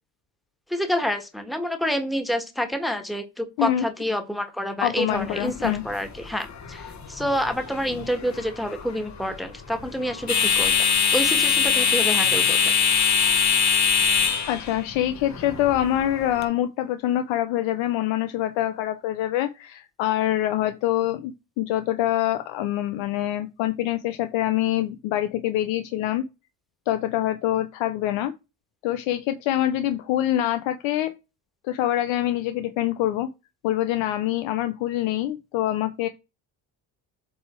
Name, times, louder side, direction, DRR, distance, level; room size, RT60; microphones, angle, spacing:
voice 1, 0.7-12.8, equal, ahead, 1.5 m, -28 dB
voice 2, 4.8-5.8 14.5-26.2 26.9-28.3 28.8-31.1 31.6-33.3 33.6-36.1, left 13 dB, 85° left, 0.8 m, -25 dB
sound 1, 5.1-16.4, left 6 dB, 40° left, 1.3 m, -24 dB
8.0 x 3.4 x 4.4 m
cardioid pair, 90°, 45 cm